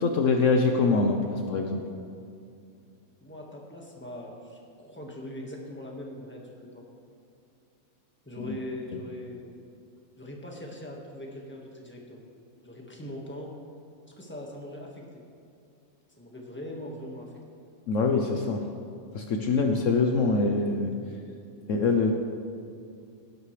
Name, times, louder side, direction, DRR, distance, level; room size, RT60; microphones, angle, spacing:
voice 1, 0.0-1.8 8.5-8.6 17.9-18.7 19.1-20.9 21.7-22.1, left 4 dB, 65° left, 3 dB, 1.1 m, -24 dB
voice 2, 3.2-6.9 8.3-9.5 10.2-12.2 12.6-13.5 14.1-15.0 16.1-17.3, left 1 dB, 10° left, -1 dB, 1.6 m, -41 dB
18.0 x 11.0 x 3.3 m, 2.5 s
omnidirectional pair, 1.5 m